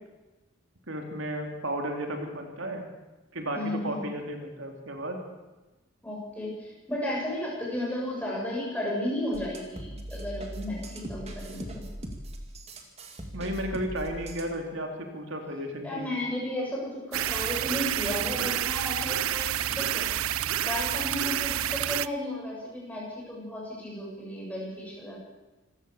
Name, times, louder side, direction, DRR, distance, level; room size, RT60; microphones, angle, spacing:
voice 1, 0.9-2.8 3.3-5.2 13.3-16.1, right 1 dB, 70° right, 3 dB, 3.1 m, -33 dB
voice 2, 3.5-4.0 6.0-11.8 15.8-20.1 20.6-25.2, left 1 dB, 5° left, -4 dB, 7.8 m, -34 dB
sound 1, 9.3-14.6, equal, 30° right, 2.4 m, -40 dB
sound 2, 17.1-22.1, right 11 dB, 85° right, 0.6 m, -29 dB
26.5 x 15.5 x 7.0 m, 1.1 s
head